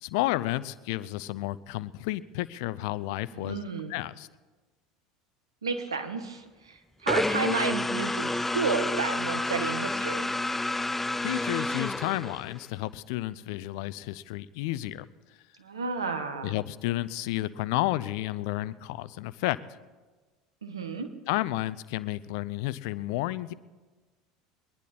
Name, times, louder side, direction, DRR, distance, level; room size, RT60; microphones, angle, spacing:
voice 1, 0.0-3.6 3.9-4.3 11.2-15.1 16.4-19.8 21.3-23.5, left 16 dB, 65° left, 17 dB, 0.5 m, -31 dB
voice 2, 3.3-3.9 5.6-10.3 15.6-16.5 20.6-21.1, right 4 dB, 90° right, 7 dB, 1.2 m, -32 dB
sound 1, 7.1-12.7, left 2 dB, 10° left, 0.3 m, -29 dB
22.5 x 10.5 x 4.3 m, 1.3 s
hypercardioid pair, 75°, 3 cm